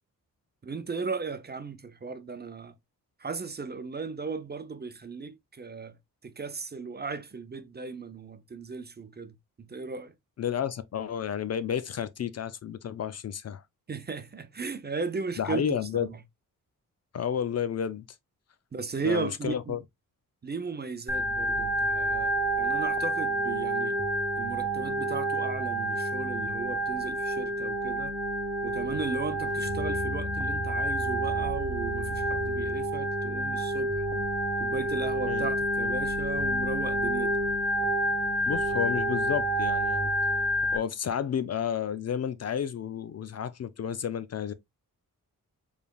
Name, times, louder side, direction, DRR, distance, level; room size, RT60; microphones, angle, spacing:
voice 1, 0.6-2.7 3.2-6.0 6.2-10.1 13.9-16.2 18.7-19.8 20.4-24.0 24.4-28.2 28.6-34.0 34.6-37.4, right 4 dB, 30° right, 0.6 m, -36 dB
voice 2, 10.4-13.6 15.4-16.1 17.1-18.0 19.0-19.8 35.3-35.5 38.5-40.1 40.7-44.5, left 8 dB, 50° left, 0.5 m, -31 dB
Organ, 21.1-40.8, right 1 dB, 5° right, 1.2 m, -29 dB
Musical instrument, 29.4-32.9, left 1 dB, 80° left, 1.1 m, -38 dB
5.0 x 3.4 x 2.3 m
cardioid pair, 90°, 35 cm